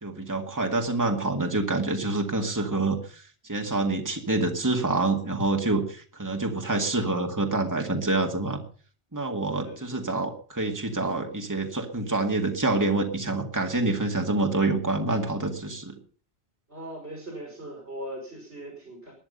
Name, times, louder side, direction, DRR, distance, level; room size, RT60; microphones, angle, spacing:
voice 1, 0.0-8.6 9.1-15.9, right 2 dB, 15° right, 3 dB, 2.0 m, -27 dB
voice 2, 16.7-19.1, right 1 dB, 70° right, 0 dB, 5.3 m, -39 dB
20.0 x 10.5 x 5.5 m, 0.41 s
omnidirectional pair, 1.1 m